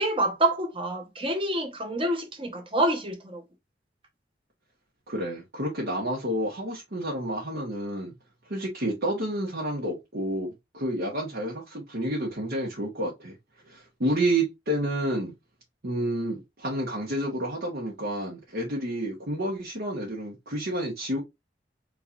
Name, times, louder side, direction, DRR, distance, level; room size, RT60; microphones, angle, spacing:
voice 1, 0.0-3.4, right 1 dB, 30° right, 1.1 m, -27 dB
voice 2, 5.1-8.1 8.5-13.3 13.6-15.3 15.8-21.2, right 1 dB, 65° right, 1.5 m, -30 dB
4.3 x 3.8 x 2.6 m
head